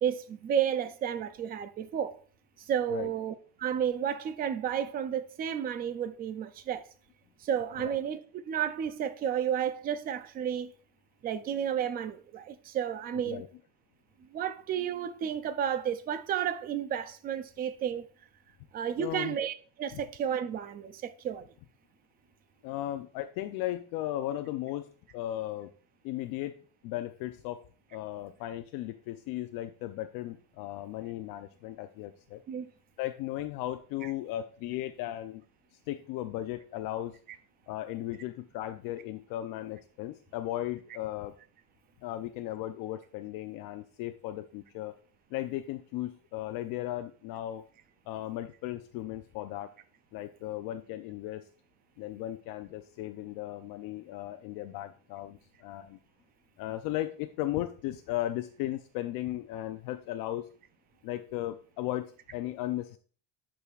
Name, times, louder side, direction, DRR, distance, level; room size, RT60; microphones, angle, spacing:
voice 1, 0.0-2.2 2.7-6.9 7.4-8.2 8.5-10.7 11.2-13.4 14.3-18.1 18.7-21.5 32.5-32.6, right 9 dB, 25° right, 0.4 m, -32 dB
voice 2, 19.0-19.4 19.9-20.0 22.6-24.9 25.1-25.7 26.0-26.5 26.8-27.6 27.9-32.4 33.0-35.4 35.9-37.2 37.7-41.3 42.0-44.9 45.3-47.6 48.1-49.7 50.1-51.4 52.0-56.0 56.6-60.5 61.0-63.0, left 14 dB, 55° left, 0.6 m, -36 dB
9.9 x 6.2 x 2.4 m
cardioid pair, 160°, 42 cm